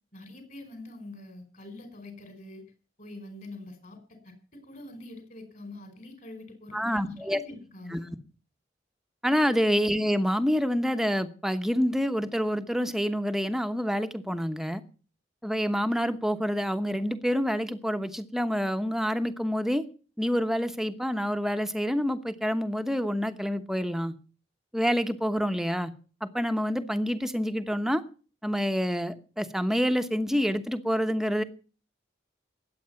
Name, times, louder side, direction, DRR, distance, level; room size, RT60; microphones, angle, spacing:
voice 1, 0.1-2.6 3.0-4.0 4.2-8.1 9.2-9.5, left 2 dB, 45° left, 5.2 m, -44 dB
voice 2, 6.7-7.4 7.9-8.0 9.2-14.8 15.4-19.9 20.2-24.1 24.7-25.9 26.2-28.0 28.4-31.4, equal, ahead, 1.0 m, -27 dB
20.5 x 8.7 x 5.8 m
head